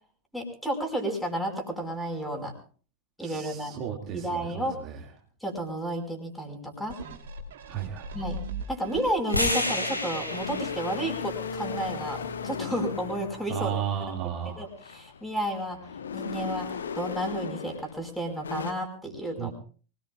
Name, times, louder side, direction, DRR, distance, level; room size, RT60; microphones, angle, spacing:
voice 1, 0.3-2.5 3.2-3.8 4.1-4.8 5.4-7.0 8.1-8.4 8.7-13.8 14.5-15.8 16.1-19.5, right 1 dB, ahead, 4 dB, 5.1 m, -32 dB
voice 2, 3.2-5.0 7.7-8.1 13.5-14.6 19.4-19.5, right 9 dB, 35° right, 1 dB, 2.2 m, -34 dB
sound 1, 6.9-9.6 10.1-10.2, right 2 dB, 60° right, 3.0 m, -39 dB
sound 2, 9.3-13.5, left 1 dB, 85° left, 3.6 m, -33 dB
sound 3, 10.3-14.1 14.7-18.0 18.3-18.7, left 6 dB, 70° left, 1.2 m, -37 dB
25.0 x 19.0 x 2.4 m, 0.40 s
figure-of-eight pair, 90°, 0 cm